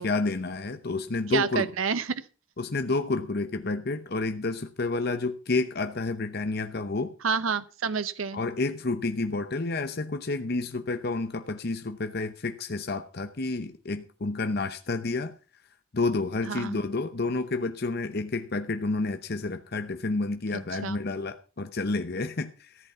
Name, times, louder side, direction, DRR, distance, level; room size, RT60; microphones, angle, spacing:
voice 1, 0.0-1.7 2.6-7.1 8.3-15.3 15.9-22.9, left 3 dB, 50° left, 8 dB, 0.8 m, -30 dB
voice 2, 1.3-2.1 7.2-8.4 16.5-16.8 20.8-21.0, right 6 dB, 85° right, 14 dB, 0.7 m, -28 dB
14.5 x 8.3 x 5.6 m, 0.36 s
head